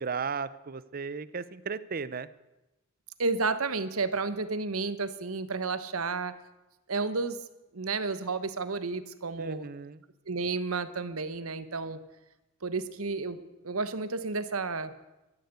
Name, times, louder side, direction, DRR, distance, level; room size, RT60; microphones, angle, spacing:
voice 1, 0.0-2.3 9.4-10.0, right 5 dB, 45° right, 17 dB, 0.6 m, -35 dB
voice 2, 3.2-6.3 6.9-7.4 7.7-9.7 10.3-12.0 12.6-14.9, right 4 dB, 80° right, 12 dB, 1.1 m, -31 dB
13.5 x 10.5 x 8.3 m, 1.0 s
head